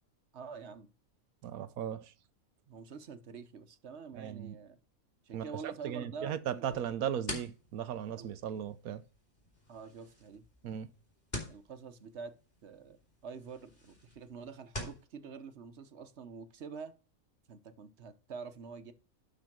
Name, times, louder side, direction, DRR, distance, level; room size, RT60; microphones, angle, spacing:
voice 1, 0.3-0.9 2.7-4.8 5.2-6.9 8.2-8.3 9.7-10.4 11.5-12.3 12.6-13.0 13.2-16.9 17.5-18.9, right 5 dB, 55° right, 1.2 m, -46 dB
voice 2, 1.4-2.0 4.1-4.6 5.3-9.0 10.6-10.9, right 9 dB, 85° right, 1.2 m, -37 dB
sound 1, 6.7-15.0, left 1 dB, 30° left, 3.1 m, -47 dB
11.5 x 4.0 x 6.0 m
omnidirectional pair, 1.5 m